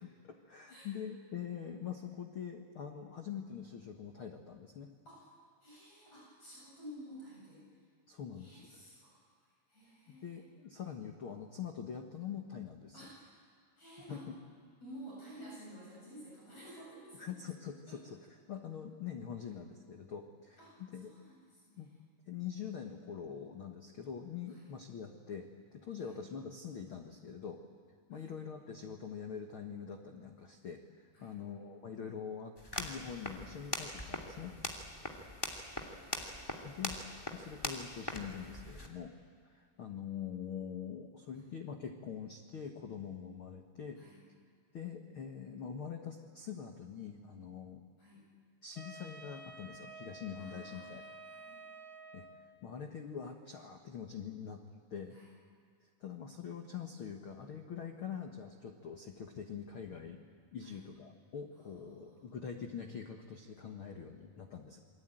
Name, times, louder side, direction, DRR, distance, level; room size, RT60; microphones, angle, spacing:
voice 1, 0.0-4.9 8.1-8.8 10.1-13.1 14.1-14.3 17.2-18.2 18.5-21.1 21.8-21.9 22.3-25.5 25.7-27.6 28.1-34.6 36.6-39.1 39.4-44.0 44.7-47.8 48.6-51.0 52.1-54.6 54.9-55.2 56.0-60.2 60.5-64.8, left 7 dB, 70° left, 4 dB, 1.2 m, -44 dB
voice 2, 5.6-7.6 8.4-10.4 12.9-13.4 13.8-14.2 14.8-17.4 17.9-18.1 20.6-21.8 24.5-24.6 26.0-26.1 28.1-28.3 31.1-31.4 35.1-35.4 35.7-36.7 44.0-44.2 48.0-48.2 50.4-51.6 55.1-55.3 60.6-60.8 61.5-62.4, equal, 40° left, -5 dB, 9.0 m, -53 dB
sound 1, 32.6-38.9, left 1 dB, 10° left, 1.9 m, -42 dB
Wind instrument woodwind instrument, 48.7-52.6, right 2 dB, 10° right, 1.6 m, -51 dB
28.0 x 23.0 x 9.1 m, 2.1 s
omnidirectional pair, 4.6 m